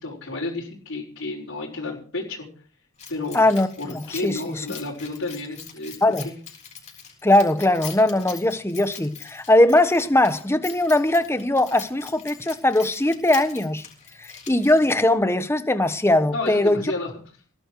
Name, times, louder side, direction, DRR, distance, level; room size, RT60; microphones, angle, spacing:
voice 1, 0.0-2.5 3.1-3.4 3.8-6.3 16.3-17.1, left 2 dB, 60° left, 5.0 m, -31 dB
Keys jangling, 3.0-15.1, left 7 dB, 30° left, 7.5 m, -43 dB
voice 2, 3.3-3.7 3.9-4.6 6.0-6.3 7.2-13.8 14.2-16.8, left 1 dB, 10° left, 1.2 m, -20 dB
20.0 x 12.0 x 4.8 m
head